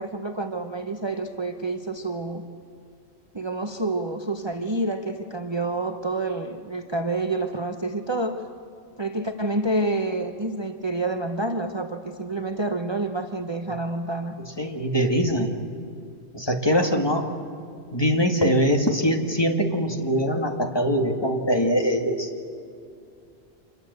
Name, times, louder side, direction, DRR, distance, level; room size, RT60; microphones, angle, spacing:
voice 1, 0.0-2.5 3.3-8.5 9.0-14.4, right 2 dB, 25° right, 5 dB, 1.0 m, -28 dB
voice 2, 14.6-15.5 16.3-17.3 17.9-22.3, equal, 25° left, 3 dB, 2.0 m, -22 dB
26.5 x 23.0 x 8.1 m, 2.4 s
omnidirectional pair, 1.1 m